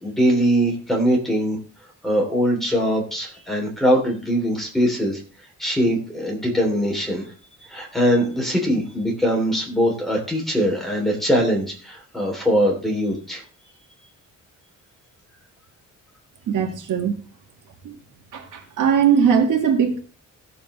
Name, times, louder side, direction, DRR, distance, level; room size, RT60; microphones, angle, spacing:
voice 1, 0.0-1.6 2.0-5.2 5.6-7.3 7.6-13.4, equal, ahead, -1 dB, 3.2 m, -21 dB
voice 2, 16.5-17.2 17.8-17.9 18.3-20.0, right 7 dB, 80° right, 4 dB, 1.9 m, -20 dB
17.0 x 7.5 x 3.2 m, 0.39 s
cardioid pair, 170°, 31 cm